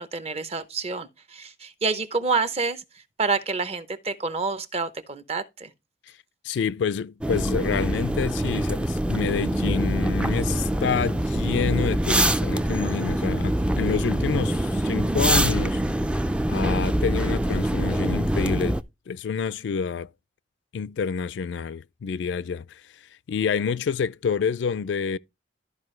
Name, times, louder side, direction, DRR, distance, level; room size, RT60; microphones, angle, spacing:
voice 1, 0.0-2.8 3.2-5.7, right 4 dB, 35° right, 0.7 m, -28 dB
voice 2, 6.4-15.8 16.4-20.1 20.7-25.2, left 6 dB, 70° left, 0.3 m, -28 dB
sound 1, 7.2-18.8, right 1 dB, 5° right, 0.3 m, -24 dB
12.5 x 4.9 x 3.1 m
head